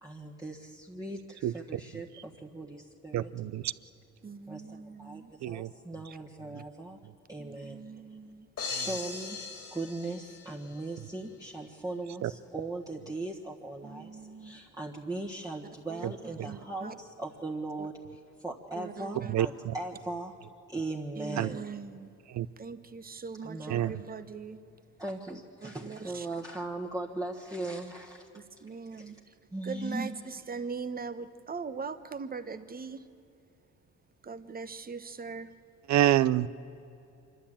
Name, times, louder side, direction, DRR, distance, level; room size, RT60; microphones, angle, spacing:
voice 1, 0.0-3.3 4.5-7.0 7.3-8.2 8.7-9.4 9.7-20.3 20.7-21.7 23.4-23.9 25.0-28.3 28.9-29.2 29.5-30.2, right 2 dB, 10° right, -3 dB, 1.6 m, -39 dB
voice 2, 3.1-3.7 5.4-5.7 12.2-12.3 19.3-19.5 21.4-21.5 22.4-22.5 23.7-23.9 35.9-36.5, right 12 dB, 65° right, 17 dB, 0.6 m, -26 dB
voice 3, 4.2-5.4 7.4-8.5 13.8-14.6 15.9-16.9 17.8-17.9 18.7-19.3 21.1-22.1 22.6-24.6 25.6-26.3 28.3-29.3 29.6-33.0 34.2-35.5, right 5 dB, 30° right, 11 dB, 1.1 m, -41 dB
sound 1, 8.6-10.8, left 5 dB, 55° left, 2.7 m, -39 dB
25.5 x 12.5 x 8.7 m, 2.8 s
cardioid pair, 90°, 30 cm